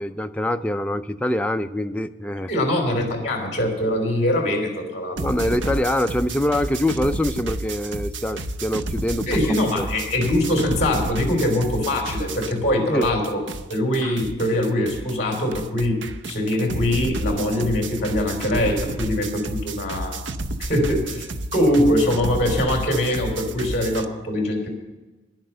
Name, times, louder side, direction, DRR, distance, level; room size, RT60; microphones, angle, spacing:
voice 1, 0.0-2.5 5.2-9.3 9.8-9.9 12.9-13.1, left 1 dB, 5° left, 7 dB, 0.4 m, -24 dB
voice 2, 2.5-5.6 9.3-13.4 13.7-20.2 20.6-24.7, left 1 dB, 35° left, 2 dB, 3.2 m, -23 dB
sound 1, 5.2-12.8 13.0-24.1, right 1 dB, 75° right, 0.7 m, -31 dB
11.0 x 10.5 x 6.7 m, 1.2 s
head